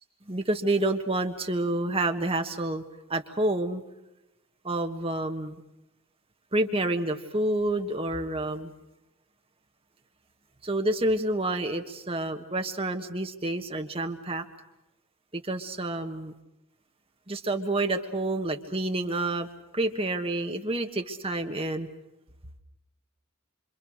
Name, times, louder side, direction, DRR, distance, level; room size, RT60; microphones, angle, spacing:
voice 1, 0.3-2.8 3.1-3.8 4.6-5.6 6.5-8.7 10.6-14.4 15.3-16.3 17.3-19.5 19.7-21.9, right 2 dB, 25° right, 6 dB, 1.5 m, -28 dB
27.0 x 26.0 x 6.5 m, 0.94 s
head